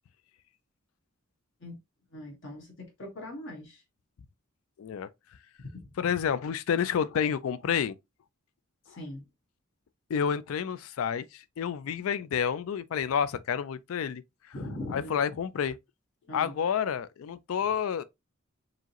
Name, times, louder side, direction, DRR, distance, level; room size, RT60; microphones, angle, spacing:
voice 1, 2.1-2.7 3.0-3.8 5.7-5.8 9.0-9.2 14.5-15.1 16.3-16.5, left 1 dB, 60° left, 1.5 m, -40 dB
voice 2, 4.8-5.1 6.0-8.0 10.1-14.2 14.5-14.6 14.9-15.8 16.3-18.0, left 7 dB, 80° left, 0.4 m, -29 dB
4.8 x 2.9 x 2.8 m
head